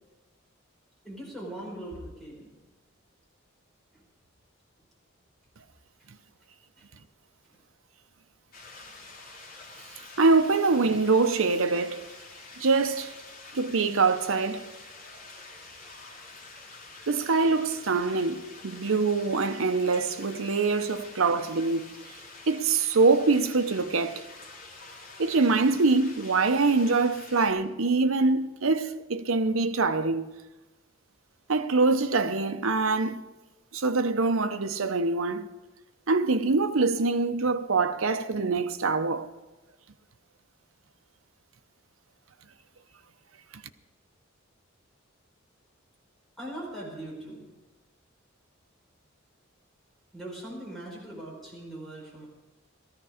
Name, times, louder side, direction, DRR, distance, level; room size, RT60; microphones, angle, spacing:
voice 1, 1.0-2.5 3.9-4.0 6.8-6.9 46.4-47.5 50.1-52.3, right 1 dB, ahead, 5.0 m, -40 dB
sound 1, 8.5-27.5, left 3 dB, 45° left, 3.0 m, -47 dB
voice 2, 10.2-12.0 12.6-13.1 13.5-14.6 17.1-21.9 22.5-24.3 25.2-30.3 31.5-33.2 33.7-35.5 36.1-39.3, right 3 dB, 75° right, 0.8 m, -24 dB
17.0 x 14.5 x 5.0 m
head